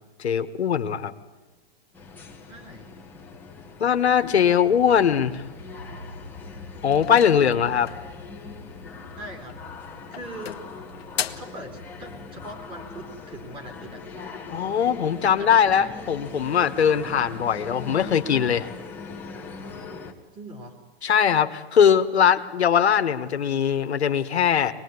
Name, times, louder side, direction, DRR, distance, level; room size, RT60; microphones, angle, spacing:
voice 1, 0.2-1.1 3.8-5.4 6.8-7.9 14.5-18.7 21.0-24.7, left 8 dB, 90° left, 8 dB, 1.7 m, -21 dB
sound 1, 1.9-20.1, left 4 dB, 5° left, 1.7 m, -41 dB
voice 2, 2.4-2.9 9.2-9.6 10.1-10.5 11.3-14.0 15.4-15.9 20.3-20.8, right 1 dB, 15° right, 2 dB, 3.5 m, -41 dB
sound 2, 6.9-8.1 9.4-9.8 10.1-11.6, left 9 dB, 70° left, 1.6 m, -35 dB
25.5 x 20.5 x 9.7 m, 1.2 s
hypercardioid pair, 155°, 32 cm